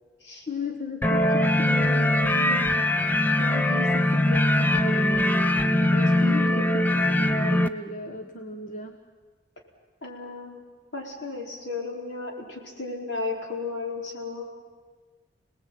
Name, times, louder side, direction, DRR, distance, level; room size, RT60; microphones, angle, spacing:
voice 1, 0.5-9.0, left 2 dB, 45° left, 4 dB, 1.4 m, -36 dB
sound 1, 1.0-7.7, left 1 dB, 10° left, 0.7 m, -22 dB
voice 2, 6.2-6.6 10.0-10.6 10.9-14.4, left 3 dB, 75° left, 0 dB, 4.8 m, -34 dB
27.5 x 19.0 x 9.3 m, 1.4 s
head